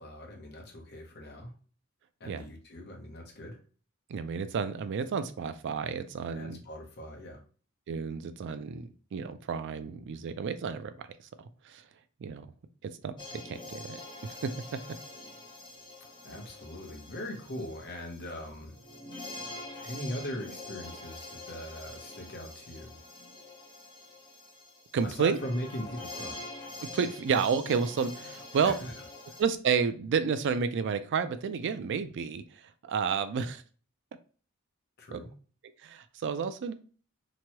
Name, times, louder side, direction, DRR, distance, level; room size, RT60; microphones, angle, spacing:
voice 1, 0.0-1.5 2.2-3.6 6.3-7.4 16.2-18.8 19.8-23.0 25.0-26.4 28.6-28.9 29.3-29.4 35.0-35.3, equal, 50° left, 1 dB, 0.8 m, -40 dB
voice 2, 4.1-6.6 7.9-11.0 11.4-11.9 12.2-12.5 12.8-13.1 13.4-14.8 24.9-25.4 26.8-28.8 29.4-33.6 35.1-35.2 35.8-36.7, right 6 dB, 55° right, 11 dB, 0.3 m, -31 dB
sound 1, 13.2-29.4, left 2 dB, 20° left, 0.8 m, -45 dB
3.0 x 2.2 x 2.8 m, 0.40 s
head